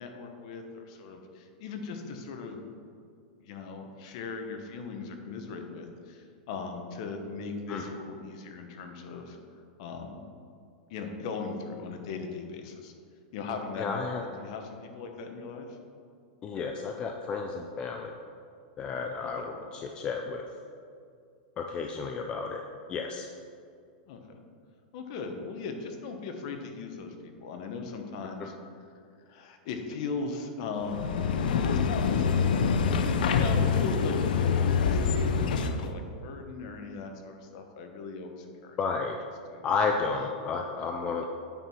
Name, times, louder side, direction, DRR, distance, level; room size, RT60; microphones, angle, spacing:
voice 1, 0.0-2.6 3.4-10.2 10.9-12.9 13.3-15.8 19.2-19.5 24.1-24.4 24.9-28.5 29.3-31.2 33.4-38.8 39.5-39.7, left 4 dB, 50° left, 4 dB, 1.1 m, -39 dB
voice 2, 13.8-14.2 16.4-18.1 18.8-20.5 21.6-22.6 22.9-23.3 28.4-28.5 38.8-39.2 39.6-41.3, left 5 dB, 20° left, 3 dB, 0.4 m, -32 dB
sound 1, 30.8-35.9, left 6 dB, 85° left, 0.6 m, -25 dB
9.0 x 4.7 x 5.5 m, 2.3 s
supercardioid pair, 165°, 5 cm